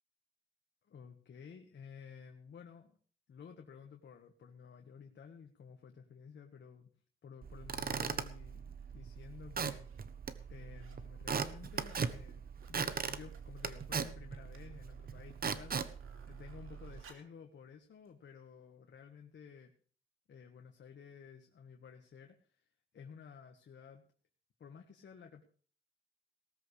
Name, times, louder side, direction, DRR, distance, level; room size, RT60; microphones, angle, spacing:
voice 1, 0.9-3.0 3.3-6.9 7.2-9.9 10.5-19.7 20.3-22.7 22.9-24.0 24.6-25.4, left 6 dB, 60° left, 3 dB, 1.6 m, -53 dB
Squeak / Wood, 7.4-17.0, right 6 dB, 45° right, 1.0 m, -40 dB
sound 1, 8.8-8.9 9.6-10.0 10.4-11.1 11.4-12.1 12.4-17.4 18.1-18.2, right 5 dB, 80° right, 2.8 m, -63 dB
18.0 x 13.5 x 3.3 m, 0.43 s
cardioid pair, 115°, 21 cm